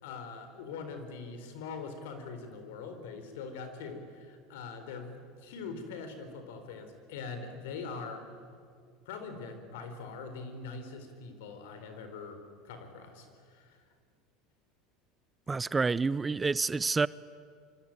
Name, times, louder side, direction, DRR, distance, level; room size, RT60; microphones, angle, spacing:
voice 1, 0.0-8.2 9.1-13.3 13.5-13.8, left 4 dB, 75° left, 8 dB, 4.4 m, -42 dB
voice 2, 15.5-17.1, right 4 dB, 20° right, 20 dB, 0.6 m, -28 dB
25.5 x 25.5 x 9.0 m, 2.2 s
hypercardioid pair, 85°, 0 cm